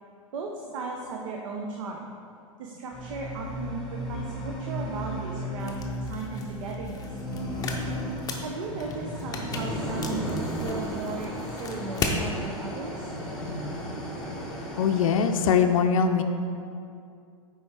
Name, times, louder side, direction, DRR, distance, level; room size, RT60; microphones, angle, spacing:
voice 1, 0.3-2.1 2.6-7.0 8.4-13.1, right 4 dB, 65° right, 1 dB, 0.6 m, -36 dB
sound 1, 2.9-15.6, equal, ahead, 1.4 m, -34 dB
sound 2, 5.6-12.2, left 4 dB, 20° left, 0.7 m, -36 dB
voice 2, 14.8-16.2, left 6 dB, 70° left, 6 dB, 0.4 m, -22 dB
7.0 x 4.7 x 3.4 m, 2.4 s
hypercardioid pair, 110°, 17 cm